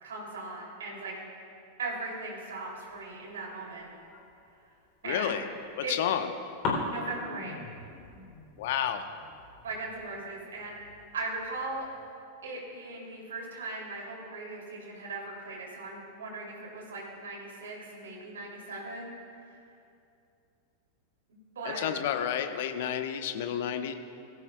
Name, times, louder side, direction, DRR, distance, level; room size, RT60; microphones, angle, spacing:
voice 1, 0.0-1.1 1.8-3.9 5.0-5.3 5.8-5.9 6.9-7.6 9.6-10.8 11.1-11.9 12.4-19.1 19.5-19.6 21.5-21.9, right 3 dB, 65° right, -2 dB, 2.9 m, -38 dB
sound 1, 2.7-4.8 5.4-6.3 6.6-12.1, left 3 dB, 35° left, 3.2 m, -40 dB
voice 2, 5.0-5.5 5.8-6.3 8.6-9.1 21.6-23.9, left 9 dB, 55° left, 8 dB, 0.9 m, -30 dB
20.5 x 15.5 x 2.3 m, 2.5 s
figure-of-eight pair, 90°, 0 cm